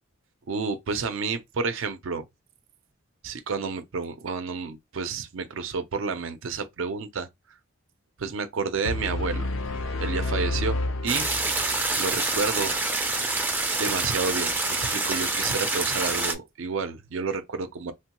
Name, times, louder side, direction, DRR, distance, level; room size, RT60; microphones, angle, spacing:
voice 1, 0.5-2.2 3.2-7.3 8.2-9.5 10.0-11.3 12.0-12.7 13.7-17.9, right 4 dB, 70° right, 0.5 m, -30 dB
sound 1, 8.8-11.9, left 2 dB, 75° left, 0.5 m, -29 dB
sound 2, 11.1-16.3, right 3 dB, 10° right, 0.4 m, -26 dB
3.0 x 2.2 x 2.9 m
head